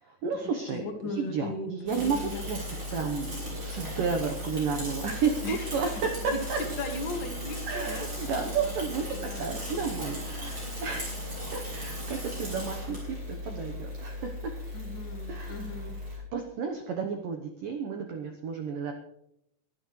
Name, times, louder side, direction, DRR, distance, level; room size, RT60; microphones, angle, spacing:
voice 1, 0.0-6.6 7.6-14.5 15.3-18.9, right 5 dB, 90° right, 4 dB, 1.9 m, -32 dB
voice 2, 0.7-2.4 5.4-5.7 6.3-8.1 8.4-8.7 9.1-9.8 14.7-16.0, left 2 dB, 75° left, 2 dB, 1.0 m, -37 dB
Bicycle / Mechanisms, 1.9-16.2, left 1 dB, 25° right, 7.3 m, -37 dB
23.0 x 13.0 x 3.2 m, 0.81 s
omnidirectional pair, 5.5 m